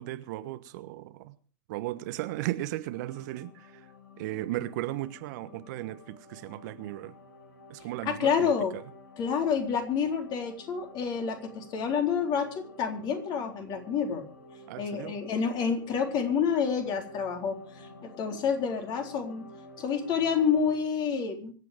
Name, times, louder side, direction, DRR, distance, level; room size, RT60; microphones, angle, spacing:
voice 1, 0.0-1.3 1.7-3.9 4.2-7.1 7.7-8.8 14.7-15.2, right 16 dB, 55° right, 1.2 m, -36 dB
sound 1, 2.9-20.7, left 2 dB, 70° left, 6.5 m, -51 dB
voice 2, 8.0-8.7 9.2-14.3 14.8-19.5 19.8-21.5, left 6 dB, 40° left, 3.9 m, -28 dB
25.0 x 8.4 x 5.1 m
hypercardioid pair, 95°, 11 cm